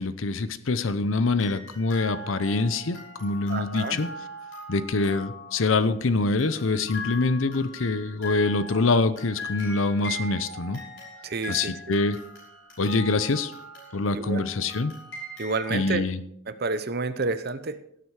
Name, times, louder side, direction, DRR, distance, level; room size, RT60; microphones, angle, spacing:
voice 1, 0.0-4.1 4.7-10.8 11.5-12.2 12.8-13.5 13.9-14.9 15.7-16.2, left 3 dB, 80° left, 13 dB, 0.8 m, -25 dB
sound 1, 1.0-1.1 1.4-6.0 6.4-15.8, left 1 dB, 65° left, 6.0 m, -40 dB
voice 2, 3.5-4.0 11.2-12.0 14.1-14.5 15.4-16.0 16.5-17.8, right 3 dB, 55° right, 12 dB, 0.8 m, -30 dB
17.0 x 7.8 x 4.8 m, 0.71 s
head